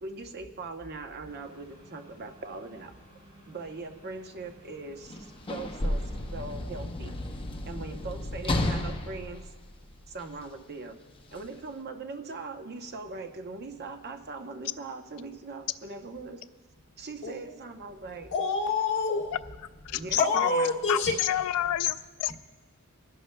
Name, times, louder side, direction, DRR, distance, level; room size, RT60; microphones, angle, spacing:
voice 1, 0.0-2.9 3.5-5.2 5.5-7.2 7.7-9.5 10.1-11.0 11.3-16.5 17.0-18.3 19.9-20.8, right 3 dB, 45° right, 6 dB, 0.8 m, -40 dB
sound 1, 1.2-6.5, right 1 dB, 25° right, 3.4 m, -55 dB
Sliding door / Slam, 5.0-10.4 11.3-11.5, left 1 dB, 25° left, 0.7 m, -33 dB
voice 2, 17.2-17.5 18.3-19.3 20.2-21.1, left 3 dB, 55° left, 0 dB, 1.7 m, -27 dB
voice 3, 19.8-20.5 20.9-22.3, left 12 dB, 90° left, 14 dB, 0.3 m, -28 dB
24.0 x 11.0 x 2.2 m, 1.3 s
head